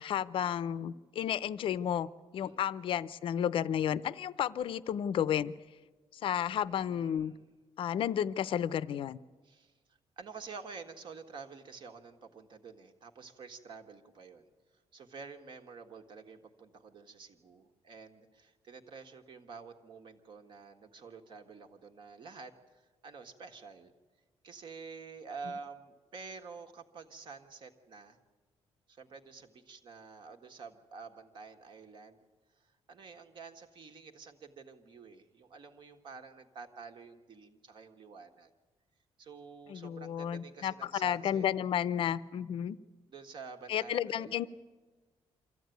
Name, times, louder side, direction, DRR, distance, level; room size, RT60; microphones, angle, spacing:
voice 1, 0.0-5.5 6.1-7.3 7.8-9.2 39.7-42.8 43.7-44.5, left 9 dB, 55° left, 17 dB, 0.6 m, -32 dB
voice 2, 2.4-2.7 6.6-7.5 9.4-14.5 14.9-23.9 24.4-28.2 28.9-32.2 32.6-38.5 39.2-41.5 43.1-44.5, right 5 dB, 50° right, 6 dB, 1.7 m, -49 dB
24.0 x 14.5 x 9.3 m, 1.3 s
cardioid pair, 165°, 10 cm